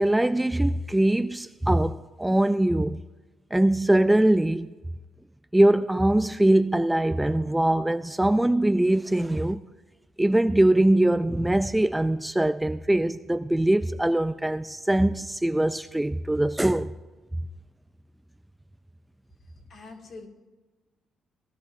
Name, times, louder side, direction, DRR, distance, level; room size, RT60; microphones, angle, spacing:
voice 1, 0.0-3.0 3.5-4.7 5.5-9.6 10.2-16.9, right 1 dB, 10° right, 0.3 m, -22 dB
voice 2, 19.4-20.3, left 3 dB, 50° left, 2.2 m, -45 dB
19.0 x 11.5 x 2.7 m
cardioid pair, 95°, 0 cm